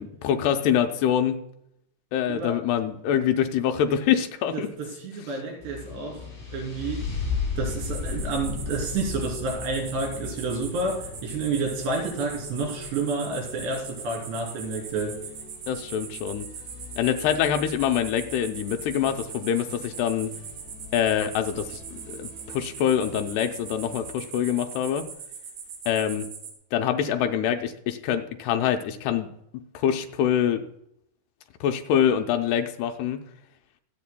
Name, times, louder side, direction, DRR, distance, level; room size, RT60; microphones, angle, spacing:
voice 1, 0.0-1.4 2.1-4.7 15.7-16.5 17.0-20.3 20.9-25.1 25.9-26.3 26.7-30.6 31.6-33.2, left 9 dB, 80° left, 6 dB, 2.7 m, -25 dB
voice 2, 4.5-6.2 6.5-7.0 7.6-15.2, right 3 dB, 80° right, 0 dB, 5.3 m, -29 dB
sound 1, 5.6-24.1, left 5 dB, 20° left, 4.8 m, -38 dB
sound 2, 7.7-26.5, right 6 dB, 55° right, 3.3 m, -41 dB
23.5 x 8.5 x 2.2 m, 0.76 s
omnidirectional pair, 4.9 m